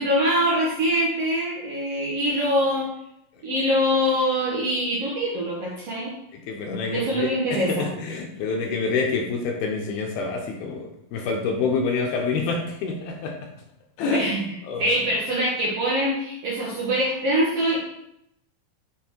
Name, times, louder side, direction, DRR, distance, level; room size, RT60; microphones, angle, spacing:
voice 1, 0.0-2.9 3.4-6.1 6.9-7.9 14.1-17.8, equal, 75° right, -5 dB, 1.4 m, -24 dB
voice 2, 6.3-13.4 14.0-14.3 14.7-15.0, left 4 dB, 75° left, 2 dB, 2.5 m, -27 dB
7.5 x 4.4 x 4.5 m, 0.79 s
omnidirectional pair, 4.8 m